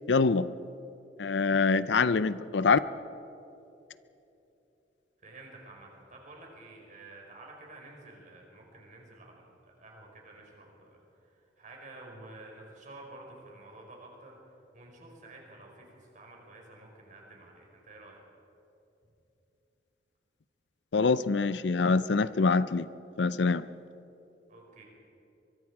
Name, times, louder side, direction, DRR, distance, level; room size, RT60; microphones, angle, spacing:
voice 1, 0.1-0.5 1.2-2.8 20.9-22.9 23.2-23.7, left 4 dB, 75° left, 16 dB, 0.6 m, -25 dB
voice 2, 5.2-9.4 9.8-11.0 11.6-14.3 14.7-18.2 24.5-24.8, right 2 dB, 45° right, 0 dB, 5.0 m, -50 dB
24.0 x 22.5 x 4.9 m, 2.9 s
head